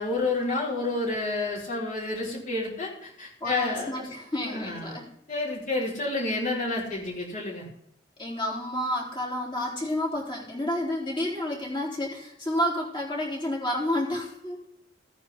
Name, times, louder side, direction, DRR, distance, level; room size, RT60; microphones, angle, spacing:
voice 1, 0.0-4.1 4.5-5.0 5.3-7.6, left 2 dB, 45° left, -4 dB, 4.6 m, -29 dB
voice 2, 3.4-5.1 8.2-14.6, left 1 dB, 25° left, -2 dB, 3.8 m, -30 dB
15.5 x 9.4 x 3.7 m, 0.73 s
head